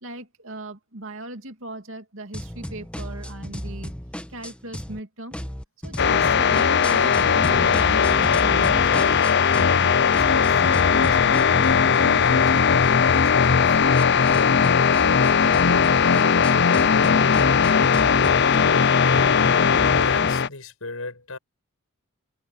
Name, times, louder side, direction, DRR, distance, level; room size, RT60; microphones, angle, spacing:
voice 1, 0.0-3.9 4.3-5.3 5.8-9.4 9.7-13.8, right 2 dB, 60° right, 2.7 m, -39 dB
sound 1, 2.3-5.0 5.3-9.8 10.1-20.3, equal, 5° left, 1.2 m, -35 dB
sound 2, 6.0-20.5, left 6 dB, 50° left, 0.6 m, -18 dB
voice 2, 19.9-21.4, left 3 dB, 70° left, 6.4 m, -35 dB
head